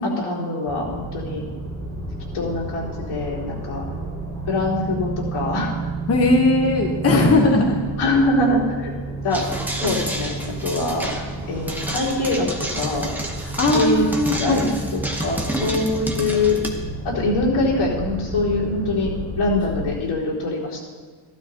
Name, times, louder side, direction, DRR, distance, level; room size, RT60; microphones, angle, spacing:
voice 1, 0.0-1.4 2.3-3.8 4.5-5.7 8.0-8.9 9.2-9.4 9.8-10.3 10.6-11.1 11.5-12.5 12.7-13.1 13.7-14.1 14.4-14.7 15.2-16.6 17.0-20.8, left 2 dB, 80° left, -6 dB, 4.0 m, -23 dB
sound 1, 0.7-19.9, right 2 dB, 15° left, 2.8 m, -31 dB
voice 2, 6.1-7.8 13.4-14.9, left 2 dB, 30° left, 0 dB, 1.1 m, -19 dB
sound 2, 9.3-16.7, right 1 dB, 5° right, 1.0 m, -29 dB
15.0 x 12.5 x 2.9 m, 1.5 s
wide cardioid pair, 170°, 48 cm